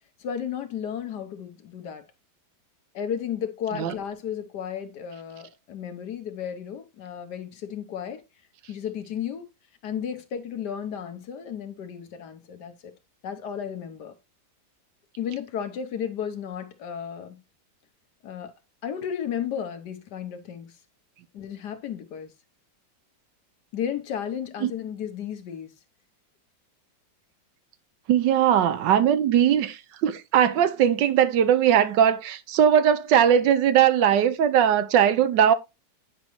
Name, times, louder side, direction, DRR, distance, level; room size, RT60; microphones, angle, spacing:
voice 1, 0.2-2.1 2.9-8.2 8.7-9.5 9.8-12.9 13.2-14.1 15.2-17.4 18.2-18.5 18.8-20.7 21.3-22.3 23.7-25.7, left 8 dB, 65° left, 1.3 m, -33 dB
voice 2, 28.1-35.5, right 9 dB, 75° right, 1.3 m, -20 dB
9.5 x 5.1 x 3.0 m
omnidirectional pair, 2.0 m